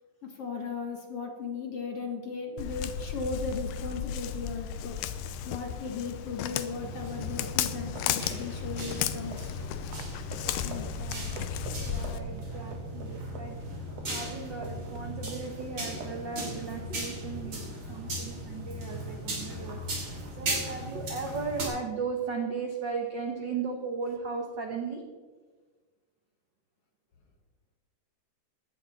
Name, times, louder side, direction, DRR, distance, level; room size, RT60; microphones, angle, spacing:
voice 1, 0.2-5.0 5.5-9.6 10.6-10.9, left 4 dB, 55° left, 3 dB, 1.8 m, -37 dB
Walk footsteps, 2.6-12.2, left 10 dB, 80° left, 2.3 m, -35 dB
sound 1, 6.7-21.7, equal, 35° right, 3.8 m, -37 dB
sound 2, 7.9-14.3 14.6-15.7 16.0-16.2, right 3 dB, 55° right, 2.2 m, -45 dB
voice 2, 11.0-11.3 11.8-13.6 14.1-19.8 20.4-25.0, right 5 dB, 85° right, 3 dB, 1.0 m, -36 dB
16.5 x 11.5 x 4.2 m, 1.4 s
omnidirectional pair, 4.1 m